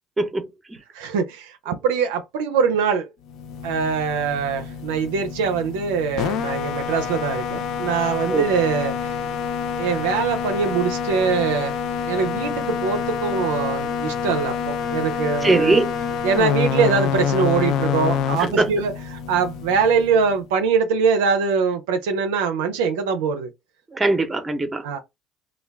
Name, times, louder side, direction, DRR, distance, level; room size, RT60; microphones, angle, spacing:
voice 1, 0.2-0.5 8.3-8.5 15.4-15.9 18.4-18.7 23.9-24.8, right 3 dB, 20° right, 0.7 m, -21 dB
voice 2, 0.9-3.1 3.6-9.2 9.8-11.8 12.1-15.8 16.2-18.9 19.3-23.5 24.8-25.0, right 5 dB, 90° right, 0.4 m, -22 dB
sound 1, 3.3-20.5, left 7 dB, 65° left, 0.3 m, -27 dB
2.2 x 2.2 x 3.3 m
supercardioid pair, 80°, 0 cm